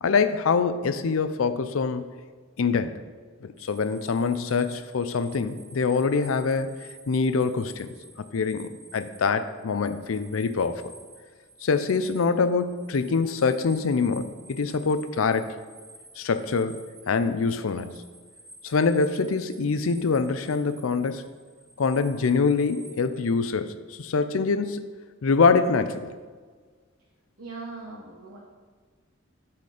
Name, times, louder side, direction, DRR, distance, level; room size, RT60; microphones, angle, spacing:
voice 1, 0.0-2.1 2.6-3.0 3.4-6.7 7.1-7.9 8.3-10.9 11.6-15.5 16.2-16.8 17.1-18.0 18.6-21.2 21.8-24.8 25.2-26.1, left 4 dB, 80° left, 10 dB, 0.5 m, -24 dB
sound 1, 3.6-23.4, right 2 dB, 25° right, 1.9 m, -51 dB
voice 2, 27.4-28.4, right 3 dB, 85° right, -1 dB, 1.0 m, -39 dB
11.5 x 4.3 x 4.9 m, 1.5 s
head